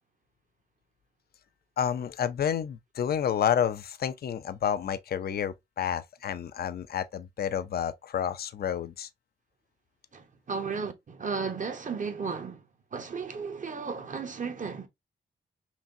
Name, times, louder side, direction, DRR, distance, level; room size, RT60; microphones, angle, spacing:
voice 1, 1.8-9.1, left 8 dB, 50° left, 0.5 m, -30 dB
voice 2, 10.1-12.6 12.9-14.9, right 5 dB, 40° right, 1.0 m, -34 dB
5.8 x 2.2 x 2.7 m
cardioid pair, 85°, 20 cm